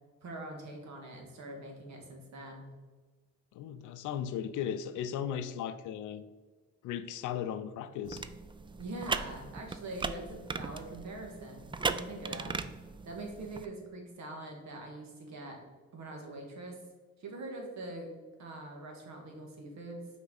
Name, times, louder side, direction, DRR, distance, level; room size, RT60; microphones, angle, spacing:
voice 1, 0.2-2.7 8.8-12.6 13.1-15.6 15.9-16.8 17.2-18.1 18.4-20.1, right 2 dB, 65° right, 1 dB, 1.7 m, -43 dB
voice 2, 3.5-6.2 6.8-8.2, left 9 dB, 80° left, 12 dB, 0.5 m, -36 dB
sound 1, 8.1-13.7, right 4 dB, 15° right, 0.3 m, -38 dB
5.9 x 4.5 x 4.0 m, 1.3 s
cardioid pair, 90°, 30 cm